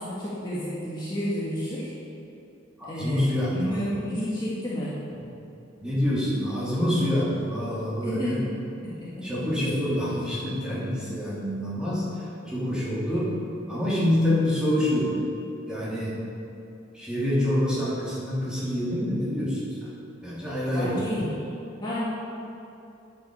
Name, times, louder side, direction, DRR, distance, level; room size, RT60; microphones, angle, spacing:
voice 1, 0.0-1.9 2.8-5.0 8.0-8.5 8.8-9.5 20.7-21.3 21.8-22.1, equal, 20° left, -9 dB, 1.9 m, -31 dB
voice 2, 2.8-3.9 5.8-8.4 9.2-13.3 13.7-15.1 15.7-16.2 16.9-19.9 20.2-21.1, left 1 dB, 5° right, -9 dB, 3.1 m, -26 dB
10.5 x 8.0 x 6.9 m, 2.8 s
head